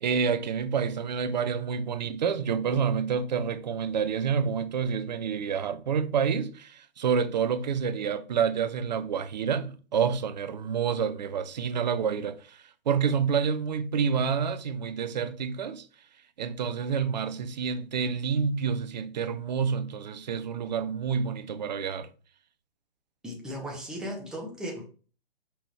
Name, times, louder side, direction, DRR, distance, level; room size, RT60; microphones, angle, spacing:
voice 1, 0.0-15.8 16.4-22.1, right 6 dB, 45° right, 0.5 m, -28 dB
voice 2, 23.2-24.9, equal, ahead, 0.6 m, -36 dB
5.5 x 3.0 x 3.1 m
figure-of-eight pair, 125°, 30 cm